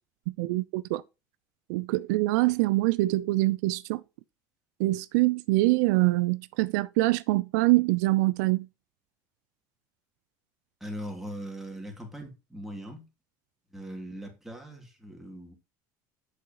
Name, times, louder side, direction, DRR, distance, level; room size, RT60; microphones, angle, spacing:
voice 1, 0.3-1.0 1.7-4.0 4.8-8.7, right 20 dB, 85° right, 0.4 m, -24 dB
voice 2, 10.8-13.1 13.7-15.5, equal, 5° right, 2.6 m, -40 dB
8.1 x 6.5 x 2.9 m
cardioid pair, 125°, 9 cm